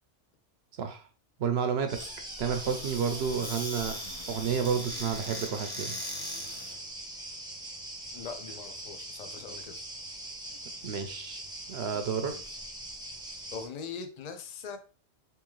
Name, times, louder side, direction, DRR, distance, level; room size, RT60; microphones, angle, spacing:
voice 1, 1.4-1.9 2.4-4.0 4.3-5.9 10.8-11.4 11.7-12.3, right 7 dB, 65° right, 7 dB, 0.8 m, -30 dB
Squeak / Cupboard open or close, 1.9-6.8, left 1 dB, 20° left, 1.0 m, -40 dB
sound 1, 1.9-13.7, right 1 dB, 5° right, 0.7 m, -42 dB
voice 2, 8.1-9.8 12.2-12.4 13.5-14.8, left 5 dB, 50° left, 7 dB, 0.5 m, -41 dB
3.5 x 3.0 x 3.1 m, 0.36 s
omnidirectional pair, 1.2 m